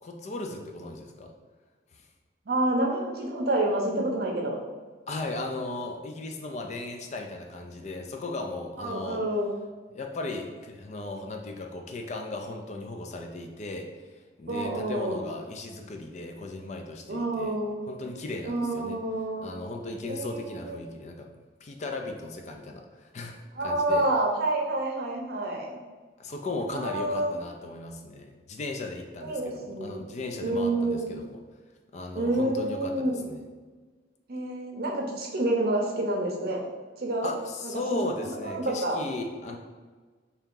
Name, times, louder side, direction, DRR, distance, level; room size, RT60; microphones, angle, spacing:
voice 1, 0.0-1.3 5.1-9.2 9.9-13.9 14.4-17.6 17.9-19.0 19.4-21.3 21.6-24.1 26.2-31.4 31.9-33.4 37.2-39.6, left 2 dB, 40° left, 3 dB, 0.4 m, -36 dB
voice 2, 2.5-4.6 8.8-9.5 14.5-15.2 17.1-17.8 18.4-19.8 20.1-20.8 23.6-25.8 26.7-27.3 29.2-30.0 30.4-31.1 32.2-33.3 34.3-36.6 37.0-37.3 37.6-39.0, right 1 dB, 55° right, 0 dB, 0.7 m, -28 dB
3.4 x 2.8 x 3.7 m, 1.4 s
head